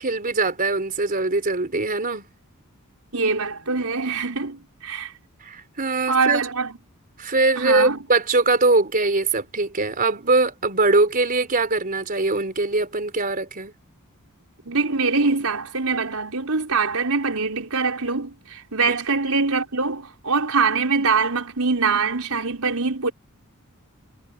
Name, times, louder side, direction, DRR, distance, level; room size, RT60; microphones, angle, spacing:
voice 1, 0.0-2.2 5.4-6.4 7.2-13.7, right 3 dB, 40° right, 4.1 m, -22 dB
voice 2, 3.1-5.1 6.1-6.8 7.6-8.0 14.7-23.1, right 4 dB, 85° right, 4.5 m, -23 dB
head